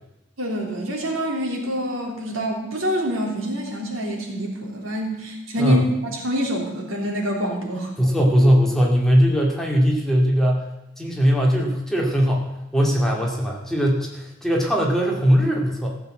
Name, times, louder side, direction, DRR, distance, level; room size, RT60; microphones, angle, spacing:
voice 1, 0.4-7.9, equal, 75° right, 0 dB, 3.3 m, -26 dB
voice 2, 5.6-6.0 8.0-10.7 11.0-16.0, equal, ahead, -2 dB, 2.2 m, -20 dB
15.0 x 7.2 x 7.8 m, 0.89 s
head